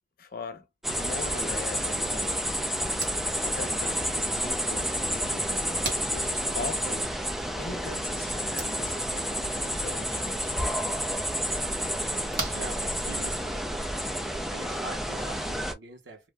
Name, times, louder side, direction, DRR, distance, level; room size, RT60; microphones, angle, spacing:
voice 1, 0.2-2.5 3.4-7.1 7.5-10.6, left 4 dB, 55° left, 0.6 m, -41 dB
sound 1, 0.8-15.7, equal, ahead, 0.4 m, -30 dB
sound 2, 2.8-13.5, right 3 dB, 55° right, 1.1 m, -43 dB
voice 2, 12.5-13.7 14.5-16.3, right 3 dB, 85° right, 1.0 m, -43 dB
2.5 x 2.1 x 3.4 m
head